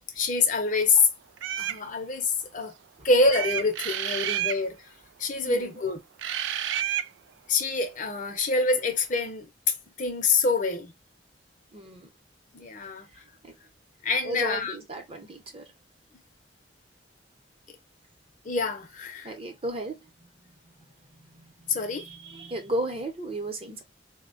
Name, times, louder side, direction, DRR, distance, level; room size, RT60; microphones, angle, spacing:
voice 1, 0.1-1.1 1.6-2.7 3.0-4.8 5.2-6.0 6.8-7.0 7.5-9.5 10.0-10.9 12.5-13.1 14.0-14.7 18.4-19.3 21.7-22.1, left 3 dB, 45° left, 0.7 m, -26 dB
sound 1, 1.4-1.8 3.3-4.6 6.2-7.1, right 11 dB, 85° right, 0.3 m, -29 dB
voice 2, 5.4-5.8 11.7-12.1 13.4-13.5 14.2-15.7 19.2-20.7 21.3-23.8, right 1 dB, 30° right, 0.8 m, -35 dB
4.1 x 2.2 x 2.5 m
head